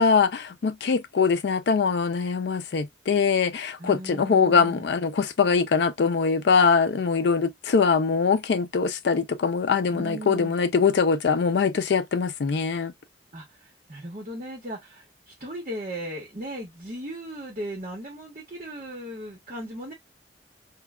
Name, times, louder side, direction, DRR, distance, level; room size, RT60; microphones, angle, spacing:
voice 1, 0.0-12.9, left 5 dB, 65° left, 0.4 m, -22 dB
voice 2, 3.8-4.9 9.9-10.6 13.3-19.9, right 1 dB, 40° right, 1.0 m, -37 dB
3.1 x 2.2 x 2.2 m
head